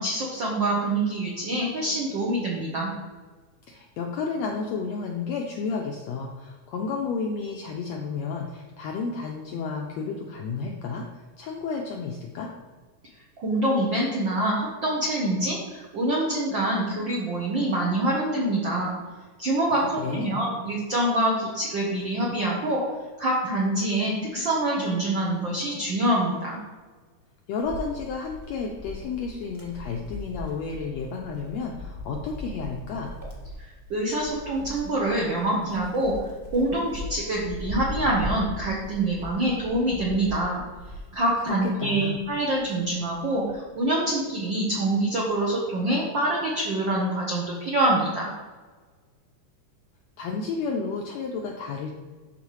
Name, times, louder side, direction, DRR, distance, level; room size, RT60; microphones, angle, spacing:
voice 1, 0.0-2.9 13.4-18.9 19.4-22.8 23.2-26.6 33.9-36.1 36.5-40.6 41.1-48.3, right 1 dB, 85° right, -3 dB, 1.0 m, -25 dB
voice 2, 3.7-12.5 19.7-20.4 27.5-33.1 41.5-42.2 50.2-51.9, left 4 dB, 85° left, 1 dB, 1.5 m, -32 dB
Wind, 27.6-41.7 42.2-43.7, left 1 dB, 15° right, 0.6 m, -39 dB
12.0 x 4.1 x 3.1 m, 1.4 s
omnidirectional pair, 3.7 m